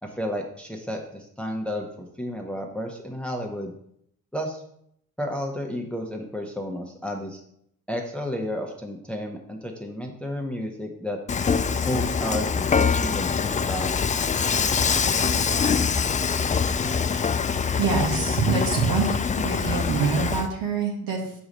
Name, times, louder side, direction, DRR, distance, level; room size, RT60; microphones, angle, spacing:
voice 1, 0.0-3.7 4.3-4.6 5.2-7.4 7.9-11.2 11.9-13.9, equal, 5° left, 1 dB, 0.9 m, -32 dB
Dishes pots and pans / Frying (food), 11.3-20.5, left 6 dB, 20° left, 0.3 m, -24 dB
voice 2, 17.8-19.1 19.3-21.3, right 5 dB, 70° right, -1 dB, 1.3 m, -25 dB
4.7 x 4.2 x 5.2 m, 0.72 s
supercardioid pair, 55°, 37 cm